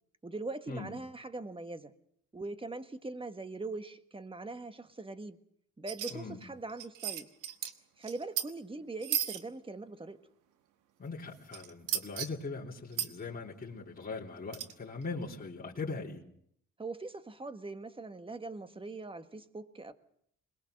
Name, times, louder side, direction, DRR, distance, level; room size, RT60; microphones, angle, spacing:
voice 1, 0.2-1.9 2.3-5.4 5.8-7.3 8.0-10.2 16.8-19.9, right 3 dB, 15° right, 10 dB, 1.5 m, -41 dB
sound 1, 5.9-6.1 6.4-6.5 6.7-7.7 8.0-8.5 9.0-9.4 11.5-12.3 12.9-13.1 14.5-14.7, right 11 dB, 90° right, 1.4 m, -34 dB
voice 2, 11.0-16.2, left 4 dB, 30° left, -4 dB, 3.6 m, -40 dB
22.0 x 21.0 x 6.6 m, 0.68 s
cardioid pair, 90°, 30 cm